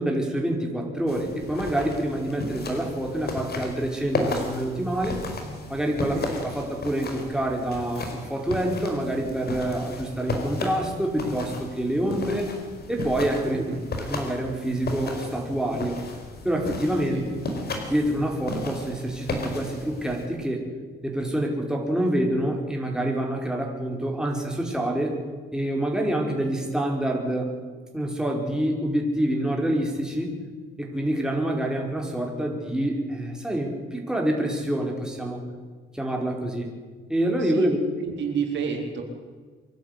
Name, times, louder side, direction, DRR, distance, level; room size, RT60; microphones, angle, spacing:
voice 1, 0.0-5.2 5.7-12.5 12.9-13.6 14.0-16.0 16.4-17.2 17.9-20.7 21.0-25.2 25.5-27.5 27.9-30.4 30.8-35.4 35.9-36.7 37.1-37.8, right 1 dB, 5° right, 0 dB, 4.8 m, -27 dB
sound 1, 1.1-20.3, left 2 dB, 55° left, 4.7 m, -34 dB
voice 2, 17.1-17.5 37.4-37.7 38.0-39.0, right 6 dB, 65° right, 2 dB, 3.8 m, -30 dB
24.5 x 11.5 x 9.8 m, 1.5 s
cardioid pair, 90°, 20 cm